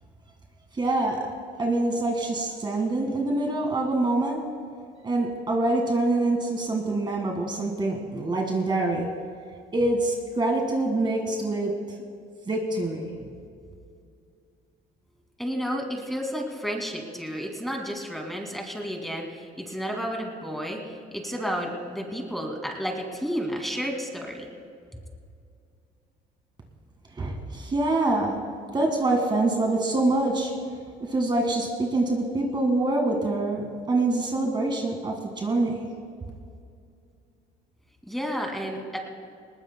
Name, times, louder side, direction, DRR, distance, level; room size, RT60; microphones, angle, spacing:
voice 1, 0.7-1.3 1.6-4.4 5.0-9.1 9.7-11.7 12.5-13.1 27.1-28.4 28.7-30.5 31.0-35.9, right 2 dB, 25° right, 1 dB, 1.8 m, -25 dB
voice 2, 15.4-24.5 38.1-39.0, equal, ahead, 2 dB, 2.3 m, -31 dB
20.5 x 19.5 x 2.2 m, 2.4 s
cardioid pair, 110°, 17 cm